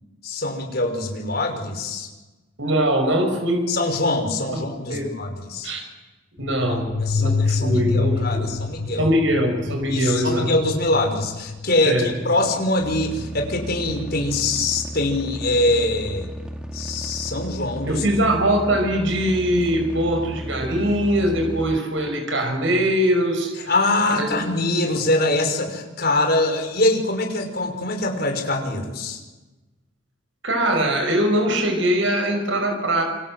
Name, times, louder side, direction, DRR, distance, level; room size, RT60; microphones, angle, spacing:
voice 1, 0.2-2.1 3.7-5.7 6.7-9.1 9.9-16.3 16.7-18.0 23.7-29.2, left 2 dB, 50° left, 4 dB, 5.8 m, -23 dB
voice 2, 2.6-3.7 4.5-5.1 5.6-5.8 6.4-6.9 7.2-8.5 9.0-10.5 11.8-12.1 17.9-23.7 24.1-24.3 30.4-33.0, right 1 dB, 65° right, 4 dB, 5.9 m, -22 dB
sound 1, 6.4-14.8, left 4 dB, 65° left, 1.1 m, -28 dB
sound 2, 12.8-21.8, equal, 5° right, 2.4 m, -34 dB
28.0 x 26.0 x 7.8 m, 1.2 s
head